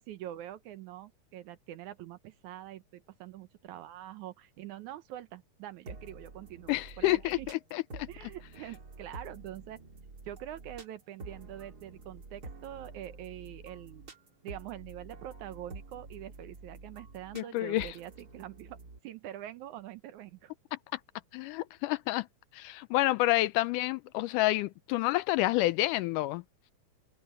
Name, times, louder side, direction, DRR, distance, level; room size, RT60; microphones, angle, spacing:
voice 1, 0.0-7.5 8.1-9.8 10.2-14.0 14.4-20.5, right 12 dB, 70° right, 2.1 m, -45 dB
sound 1, 5.9-19.0, right 3 dB, 30° right, 3.2 m, -48 dB
voice 2, 6.7-8.1 17.4-17.9 20.7-20.8 21.3-22.3 22.5-26.4, left 17 dB, 80° left, 2.0 m, -29 dB
omnidirectional pair, 3.8 m